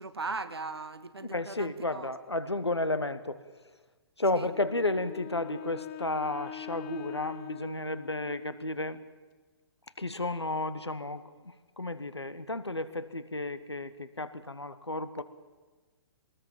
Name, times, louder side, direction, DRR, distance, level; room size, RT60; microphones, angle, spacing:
voice 1, 0.0-2.1 4.3-4.5, right 3 dB, 75° right, 10 dB, 1.6 m, -38 dB
voice 2, 1.2-3.4 4.2-9.0 10.0-15.2, left 2 dB, 80° left, 12 dB, 1.4 m, -32 dB
Wind instrument woodwind instrument, 4.5-8.7, left 10 dB, 25° left, 0.9 m, -43 dB
22.0 x 19.5 x 7.4 m, 1.3 s
figure-of-eight pair, 120°, 14 cm